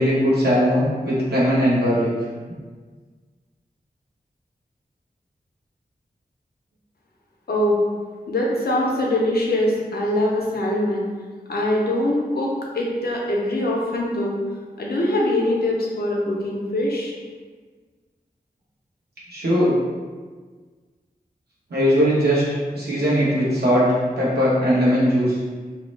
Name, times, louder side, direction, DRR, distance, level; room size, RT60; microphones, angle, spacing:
voice 1, 0.0-2.1 19.3-19.8 21.7-22.4 22.7-23.9 24.2-25.4, equal, 85° right, -8 dB, 1.0 m, -19 dB
voice 2, 7.5-7.8 8.3-11.1 11.5-14.4 14.8-17.1, left 1 dB, 75° left, -3 dB, 0.6 m, -23 dB
2.8 x 2.0 x 3.2 m, 1.5 s
wide cardioid pair, 60°, 16 cm